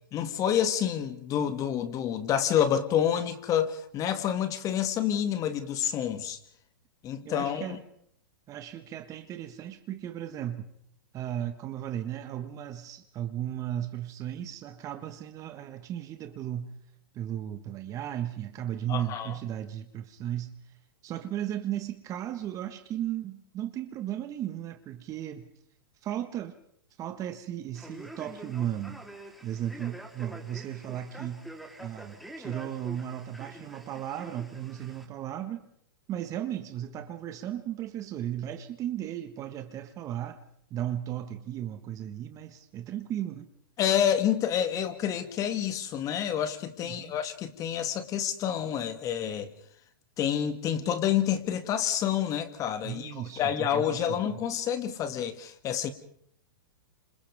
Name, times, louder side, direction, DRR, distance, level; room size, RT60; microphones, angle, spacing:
voice 1, 0.1-6.4 7.0-7.8 18.9-19.3 43.8-49.5 50.2-55.9, left 9 dB, 30° left, 9 dB, 2.2 m, -28 dB
voice 2, 7.2-7.8 8.5-10.7 11.1-16.7 17.1-20.5 21.0-25.5 26.0-26.5 27.0-29.0 29.4-31.5 31.8-35.7 36.1-40.4 40.7-43.5 46.8-47.1 52.8-54.4, right 11 dB, 30° right, 8 dB, 1.5 m, -35 dB
Male speech man speaking, 27.7-35.1, right 1 dB, ahead, 3.6 m, -46 dB
29.5 x 27.0 x 3.6 m, 0.66 s
hypercardioid pair, 125°, 11 cm